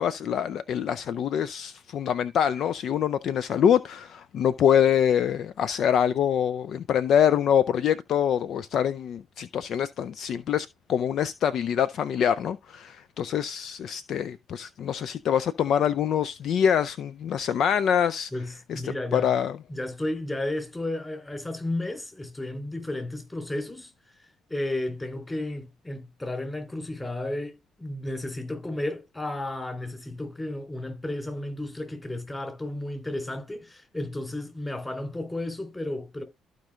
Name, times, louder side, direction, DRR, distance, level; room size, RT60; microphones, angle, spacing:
voice 1, 0.0-18.3 18.7-18.8 19.1-19.6, left 8 dB, 50° left, 0.4 m, -25 dB
voice 2, 18.3-19.3 19.7-23.9 24.5-36.2, left 1 dB, 15° left, 3.6 m, -33 dB
14.5 x 5.2 x 2.3 m
figure-of-eight pair, 45°, 0 cm